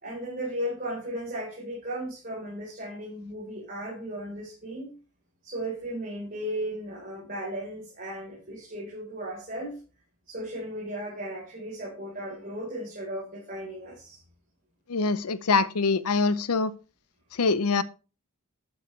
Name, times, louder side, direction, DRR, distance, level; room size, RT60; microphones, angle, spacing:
voice 1, 0.0-4.9 5.4-9.8 10.3-14.2, right 1 dB, 40° right, 4.1 m, -36 dB
voice 2, 14.9-16.7 17.3-17.8, left 4 dB, 85° left, 0.7 m, -24 dB
12.0 x 8.2 x 3.3 m
head